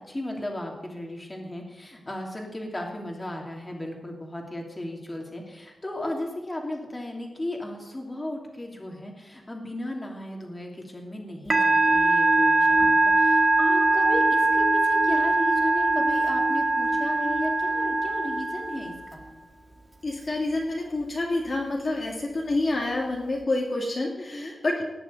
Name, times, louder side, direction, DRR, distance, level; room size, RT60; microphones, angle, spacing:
voice 1, 0.1-19.3 24.2-24.5, left 1 dB, 20° left, 1 dB, 2.8 m, -35 dB
Musical instrument, 11.5-19.1, right 2 dB, 25° right, 1.7 m, -22 dB
voice 2, 20.0-24.9, left 2 dB, 40° left, -1 dB, 2.3 m, -28 dB
18.0 x 6.9 x 9.3 m, 1.1 s
wide cardioid pair, 140°, 0 cm